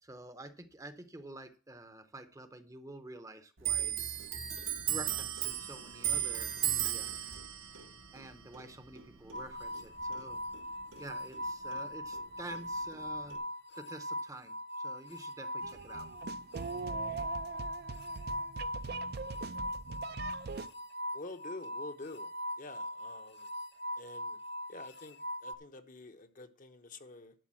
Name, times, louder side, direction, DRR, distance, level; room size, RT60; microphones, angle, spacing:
voice 1, 0.0-4.3 4.9-7.1 8.1-10.4 11.0-13.4 13.8-16.1, right 2 dB, 15° right, 0.7 m, -49 dB
Clock, 3.6-10.6 10.9-12.2 12.5-13.4, right 11 dB, 90° right, 1.6 m, -36 dB
sound 1, 9.3-25.6, equal, 60° left, 1.0 m, -40 dB
sound 2, 15.6-20.7, right 5 dB, 55° right, 0.5 m, -42 dB
voice 2, 21.1-23.5 24.0-24.4 24.7-27.3, left 2 dB, 45° left, 0.8 m, -48 dB
11.5 x 3.9 x 7.5 m
head